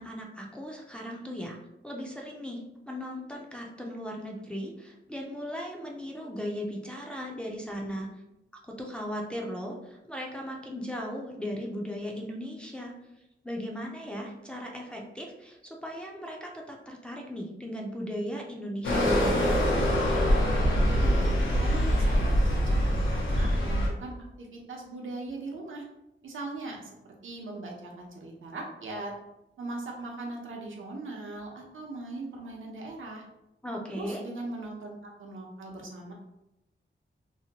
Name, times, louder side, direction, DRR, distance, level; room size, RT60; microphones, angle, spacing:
voice 1, 0.0-1.6 1.8-8.1 8.8-12.9 13.4-19.6 33.6-34.2, equal, 5° left, -1 dB, 0.4 m, -37 dB
sound 1, 18.8-23.9, equal, 75° left, 0.8 m, -24 dB
voice 2, 20.7-25.8 26.2-29.1 29.6-33.2 33.9-36.1, right 2 dB, 90° right, -1 dB, 0.7 m, -40 dB
2.7 x 2.1 x 2.8 m, 0.90 s
wide cardioid pair, 145°, 20 cm